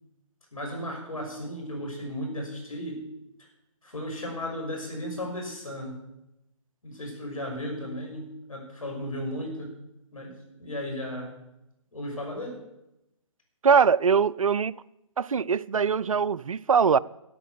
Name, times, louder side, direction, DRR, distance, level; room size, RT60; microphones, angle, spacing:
voice 1, 0.5-3.1 3.8-6.0 6.8-9.8 10.1-11.3 11.9-12.6, equal, 85° left, 6.3 m, -35 dB
voice 2, 13.6-14.8 15.2-17.0, right 6 dB, 80° right, 0.5 m, -22 dB
13.0 x 8.5 x 7.0 m
figure-of-eight pair, 140°, 17 cm